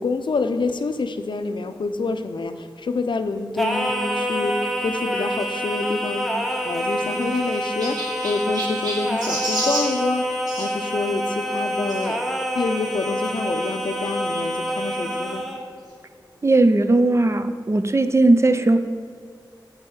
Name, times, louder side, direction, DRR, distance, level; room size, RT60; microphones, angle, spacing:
voice 1, 0.0-6.3 6.6-12.2 12.5-15.4, left 3 dB, 80° left, 9 dB, 0.5 m, -27 dB
Singing, 3.6-15.6, equal, ahead, 1.0 m, -27 dB
Chirp tweet, 6.4-10.7 11.9-12.1 12.8-12.9 13.1-13.2 14.5-14.6, right 1 dB, 55° right, 1.9 m, -31 dB
voice 2, 16.4-18.8, right 2 dB, 35° right, 9 dB, 0.5 m, -17 dB
8.8 x 4.1 x 7.1 m, 2.3 s
wide cardioid pair, 75°, 8 cm